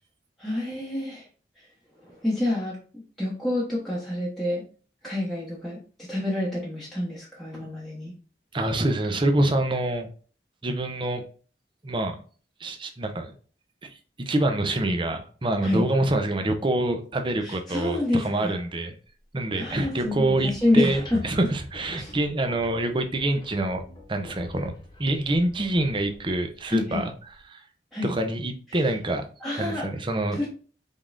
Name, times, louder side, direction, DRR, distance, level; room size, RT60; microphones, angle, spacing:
voice 1, 0.4-1.3 2.0-4.6 5.0-5.8 6.1-8.1 15.6-15.8 17.4-18.6 19.5-21.2 22.0-22.1 26.7-27.1 27.9-28.1 29.4-29.9 30.3-30.5, left 1 dB, ahead, -7 dB, 1.1 m, -28 dB
voice 2, 8.5-10.1 10.6-11.2 11.8-12.2 12.6-13.3 13.8-19.0 19.3-23.8 24.1-24.7 25.0-27.1 27.5-27.6 28.0-29.3 29.6-30.4, right 1 dB, 30° right, 6 dB, 0.7 m, -26 dB
sound 1, 19.5-27.4, left 1 dB, 25° left, 1.2 m, -45 dB
5.3 x 3.7 x 2.6 m, 0.40 s
head